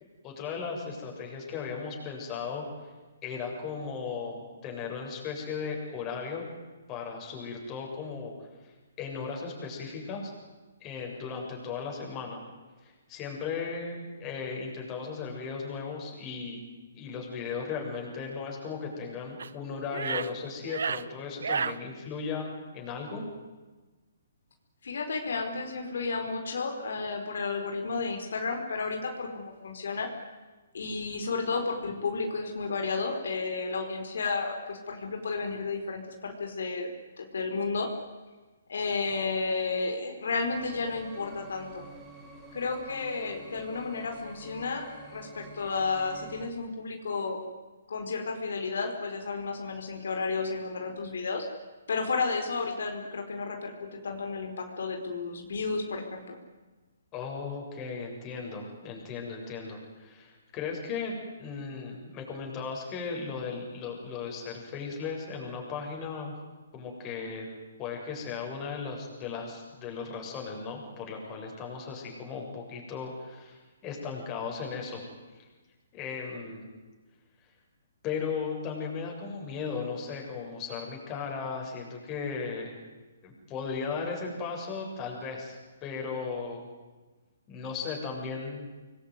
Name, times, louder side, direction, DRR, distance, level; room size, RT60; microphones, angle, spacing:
voice 1, 0.2-2.6 3.2-6.5 6.9-8.3 8.6-8.7 9.0-10.3 10.8-12.4 12.8-16.6 17.0-23.2 57.1-66.3 66.7-67.5 67.8-75.0 75.9-76.7 78.0-82.8 83.2-86.7 87.5-88.7, left 5 dB, 20° left, 0 dB, 7.5 m, -36 dB
sound 1, 19.4-19.5 19.9-20.3 20.6-21.0 21.4-21.7, right 6 dB, 75° right, 1.2 m, -31 dB
voice 2, 24.8-30.1 30.7-36.9 37.2-37.9 38.7-41.9 42.5-47.4 47.9-51.5 51.9-56.4, left 4 dB, 75° left, 4 dB, 4.7 m, -32 dB
sound 2, 40.5-46.5, right 3 dB, 15° right, 6.7 m, -49 dB
26.0 x 21.5 x 9.7 m, 1.2 s
hypercardioid pair, 160°, 0 cm